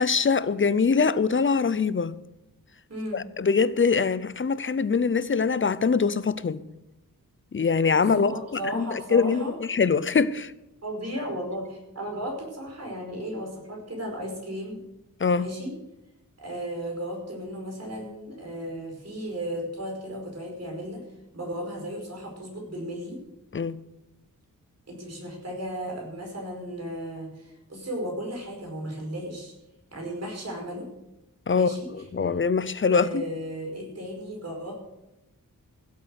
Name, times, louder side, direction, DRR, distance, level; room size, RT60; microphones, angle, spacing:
voice 1, 0.0-2.2 3.1-6.6 7.5-8.3 8.7-9.4 9.7-10.5 15.2-15.5 23.5-23.8 31.5-31.7 32.1-33.2, left 5 dB, 35° left, 0.6 m, -23 dB
voice 2, 2.9-3.2 8.0-9.6 10.8-14.8 15.3-15.7 16.4-21.0 21.3-23.2 24.9-29.5 29.9-30.9 31.5-31.9 32.9-34.7, equal, 45° right, 5.5 m, -35 dB
16.0 x 8.3 x 6.6 m
wide cardioid pair, 135°, 34 cm